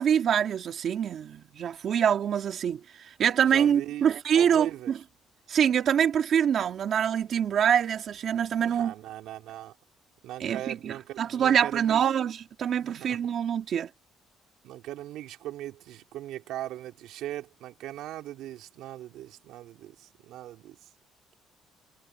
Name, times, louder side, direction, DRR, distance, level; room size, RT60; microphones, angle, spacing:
voice 1, 0.0-4.7 5.5-8.9 10.4-13.9, right 8 dB, 50° right, 2.6 m, -25 dB
voice 2, 3.5-4.9 8.6-9.8 10.2-12.0 12.8-13.2 14.6-20.9, right 13 dB, 80° right, 3.9 m, -39 dB
cardioid pair, 130°, 0 cm